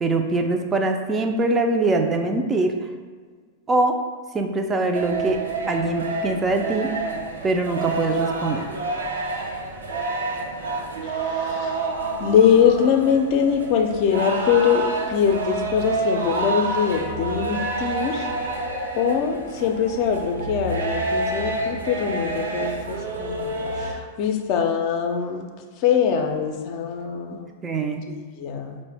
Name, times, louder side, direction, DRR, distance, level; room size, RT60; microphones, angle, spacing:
voice 1, 0.0-2.9 3.7-4.0 4.3-5.4 5.7-6.9 7.4-8.6 27.6-28.0, right 2 dB, 20° right, 4 dB, 0.4 m, -23 dB
sound 1, 4.9-23.9, right 3 dB, 85° right, 0.5 m, -28 dB
voice 2, 11.0-11.8 12.2-18.3 19.0-25.4 25.8-27.5 28.1-28.8, left 7 dB, 50° left, 4 dB, 0.4 m, -22 dB
4.7 x 2.1 x 3.3 m, 1.5 s
hypercardioid pair, 100°, 0 cm